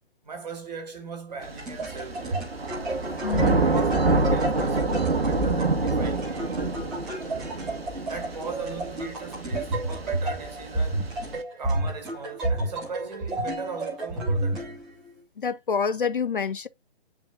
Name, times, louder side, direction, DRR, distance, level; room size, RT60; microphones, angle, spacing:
voice 1, 0.2-2.5 3.1-6.6 7.6-11.1 11.6-14.9, right 4 dB, 40° right, 2.8 m, -38 dB
sound 1, 1.3-15.2, right 2 dB, ahead, 0.5 m, -31 dB
Thunder / Rain, 1.5-11.4, right 3 dB, 70° right, 1.4 m, -27 dB
voice 2, 3.2-3.6 15.4-16.7, left 6 dB, 55° left, 0.4 m, -27 dB
8.8 x 4.9 x 2.4 m
figure-of-eight pair, 140°, 31 cm